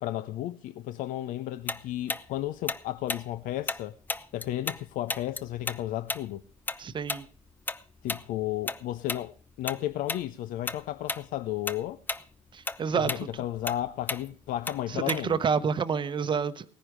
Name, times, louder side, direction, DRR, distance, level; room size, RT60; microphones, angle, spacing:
voice 1, 0.0-3.9 4.3-6.4 8.0-9.3 9.6-12.0 12.9-15.4, left 13 dB, 65° left, 0.5 m, -33 dB
Tick-tock, 1.7-4.8 5.1-9.8 10.1-10.3 10.7-11.2 11.5-15.5, left 3 dB, 10° left, 0.6 m, -34 dB
voice 2, 6.8-7.2 12.5-13.1 14.9-16.6, right 6 dB, 35° right, 0.9 m, -28 dB
18.0 x 10.0 x 4.9 m
cardioid pair, 105°, 15 cm